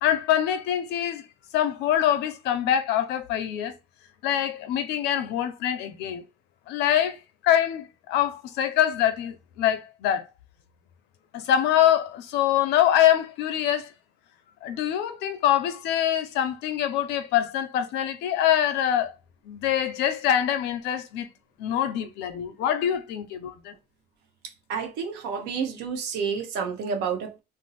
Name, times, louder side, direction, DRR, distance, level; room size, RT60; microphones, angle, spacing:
voice 1, 0.0-1.2 1.5-3.8 4.2-6.2 6.7-7.2 7.4-10.2 11.3-13.9 14.6-19.1 19.4-21.3 21.6-23.7, left 10 dB, 85° left, 0.6 m, -24 dB
voice 2, 24.7-27.4, right 6 dB, 90° right, 0.9 m, -29 dB
2.6 x 2.0 x 4.0 m
cardioid pair, 110°, 17 cm